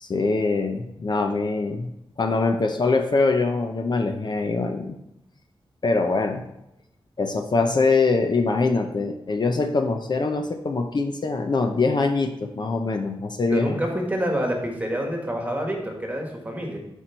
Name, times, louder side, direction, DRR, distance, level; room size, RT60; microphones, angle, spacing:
voice 1, 0.0-1.9 2.2-5.0 5.8-6.4 7.2-13.8, left 3 dB, 50° left, 5 dB, 0.6 m, -23 dB
voice 2, 13.5-16.8, equal, 15° right, 1 dB, 1.6 m, -27 dB
10.5 x 4.6 x 4.5 m, 0.85 s
wide cardioid pair, 125°, 10 cm